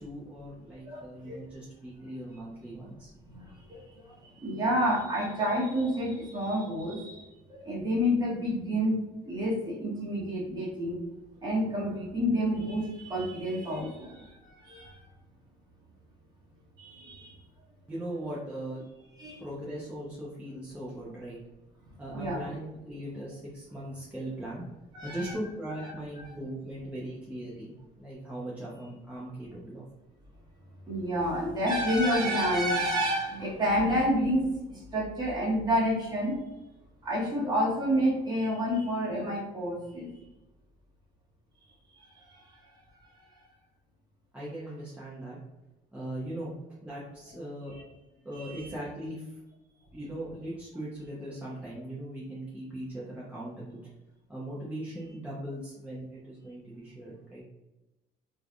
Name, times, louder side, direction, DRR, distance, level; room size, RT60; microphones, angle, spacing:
voice 1, 0.0-3.1 17.9-18.8 19.4-21.4 22.0-24.6 25.0-29.8 44.3-45.4 45.9-47.7 48.2-49.4 49.9-53.8 54.3-57.4, right 1 dB, 10° right, -8 dB, 0.7 m, -39 dB
voice 2, 0.8-1.3 3.2-7.2 7.5-11.0 11.4-14.3 14.6-15.0 16.8-17.3 19.2-19.4 22.1-22.4 24.9-25.3 25.8-26.3 30.9-36.4 37.0-40.1 42.1-42.6 47.7-47.8 48.4-48.7, equal, 25° right, -5 dB, 1.3 m, -29 dB
3.2 x 2.6 x 2.2 m, 1.0 s
cardioid pair, 110°, 17 cm